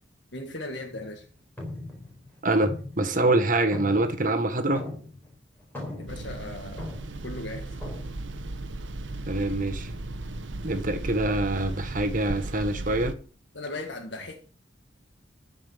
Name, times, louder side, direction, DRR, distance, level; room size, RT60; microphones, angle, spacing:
voice 1, 0.3-1.3 6.0-6.9 7.2-7.8 13.5-14.3, left 2 dB, 70° left, 1.7 m, -37 dB
sound 1, 0.9-1.2 1.6-3.4 3.7-5.3 5.6-7.3 7.8-8.1, left 2 dB, 10° left, 4.3 m, -39 dB
voice 2, 2.4-4.9 9.3-9.9 10.6-13.1, right 2 dB, 45° right, 1.5 m, -25 dB
sound 2, 6.1-13.1, right 2 dB, 85° right, 1.1 m, -36 dB
14.0 x 5.5 x 7.9 m
head